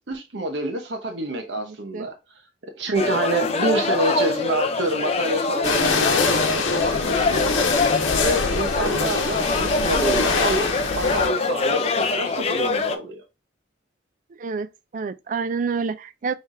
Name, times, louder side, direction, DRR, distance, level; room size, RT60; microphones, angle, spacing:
voice 1, 0.1-2.1 2.8-7.6 8.1-10.7 11.0-13.2, right 1 dB, 70° right, 0.9 m, -27 dB
voice 2, 1.6-2.1 14.4-16.3, right 5 dB, 45° right, 0.3 m, -29 dB
sound 1, 2.9-13.0, left 3 dB, 35° left, 0.5 m, -24 dB
sound 2, 5.6-11.3, left 4 dB, 90° left, 0.9 m, -24 dB
5.6 x 3.3 x 2.5 m
head